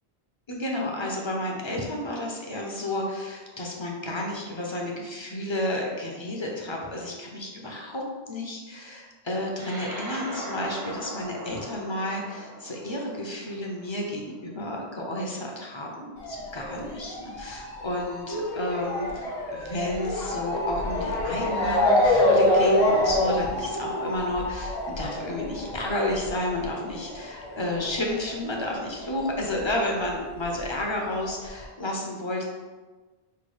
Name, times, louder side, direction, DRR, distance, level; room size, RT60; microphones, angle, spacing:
voice 1, 0.5-32.4, left 1 dB, 35° left, -1 dB, 0.5 m, -31 dB
sound 1, 9.5-14.3, right 1 dB, 25° right, 0.4 m, -40 dB
Motor vehicle (road) / Siren, 16.2-29.2 29.4-30.6 31.3-31.4 31.6-31.7, left 1 dB, 65° left, 1.1 m, -27 dB
5.6 x 2.3 x 3.2 m, 1.3 s
omnidirectional pair, 1.1 m